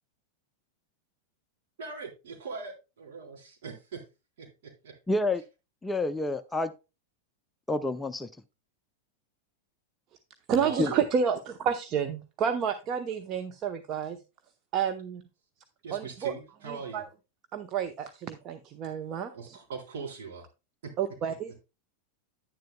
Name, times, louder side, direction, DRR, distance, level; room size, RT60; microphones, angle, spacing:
voice 1, 1.8-3.4 3.6-4.1 4.4-5.0 10.5-11.0 15.8-17.0 19.3-20.5 20.8-20.9, right 5 dB, 55° right, 3.8 m, -40 dB
voice 2, 5.1-5.4 5.8-6.7 7.7-8.3 10.8-10.9, left 2 dB, 10° left, 0.5 m, -28 dB
voice 3, 10.5-14.2 14.7-15.2 15.9-16.3 16.7-17.0 17.5-19.6 21.0-21.6, right 7 dB, 35° right, 0.9 m, -30 dB
10.5 x 10.0 x 2.2 m
figure-of-eight pair, 90°, 0 cm